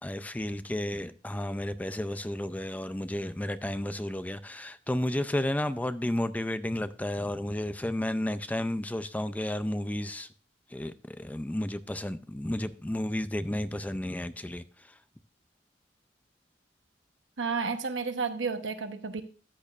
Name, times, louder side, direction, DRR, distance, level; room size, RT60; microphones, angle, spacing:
voice 1, 0.0-10.3 10.7-15.0, left 1 dB, 10° left, 0.4 m, -32 dB
voice 2, 17.4-19.2, right 5 dB, 90° right, 1.0 m, -31 dB
13.5 x 8.6 x 2.5 m
head